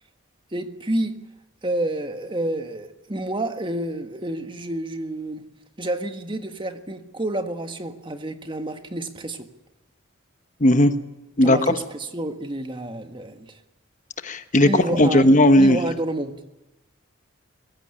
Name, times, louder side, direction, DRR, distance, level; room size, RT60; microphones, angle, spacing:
voice 1, 0.5-1.1 1.6-5.4 5.8-9.5 11.4-13.6 14.6-16.3, right 1 dB, 25° right, 7 dB, 1.6 m, -29 dB
voice 2, 10.6-10.9 11.4-11.6 14.2-15.8, left 1 dB, 40° left, 10 dB, 1.1 m, -16 dB
23.0 x 15.5 x 10.0 m, 1.0 s
head